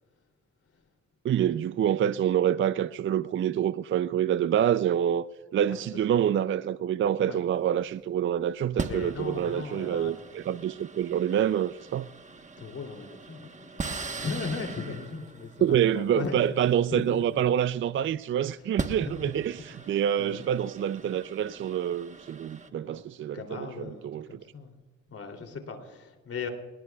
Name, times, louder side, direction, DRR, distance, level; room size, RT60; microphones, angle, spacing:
voice 1, 1.2-5.3 5.5-12.1 15.6-24.4, right 10 dB, 40° right, 0.4 m, -27 dB
sound 1, 7.6-7.8 8.8-17.8 18.5-22.7, right 3 dB, 25° right, 1.2 m, -40 dB
voice 2, 8.9-10.1 10.6-10.7 12.6-16.5 16.9-17.4 18.9-19.3 19.6-20.4 22.7-23.0 23.3-24.7 25.1-26.5, left 4 dB, 50° left, 3.0 m, -38 dB
27.0 x 19.5 x 2.3 m
cardioid pair, 90°, 30 cm